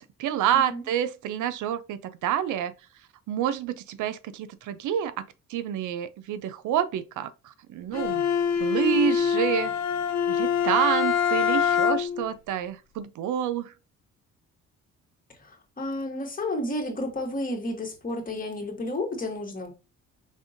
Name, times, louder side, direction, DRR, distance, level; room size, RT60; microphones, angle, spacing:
voice 1, 0.0-2.7 3.3-5.2 5.5-8.2 8.6-9.7 10.3-13.7, right 10 dB, 80° right, 0.6 m, -28 dB
voice 2, 0.5-0.9 15.4-19.7, left 1 dB, 30° left, 1.9 m, -31 dB
Bowed string instrument, 7.9-12.3, left 8 dB, 60° left, 0.7 m, -24 dB
5.4 x 3.5 x 2.6 m
cardioid pair, 90°, 30 cm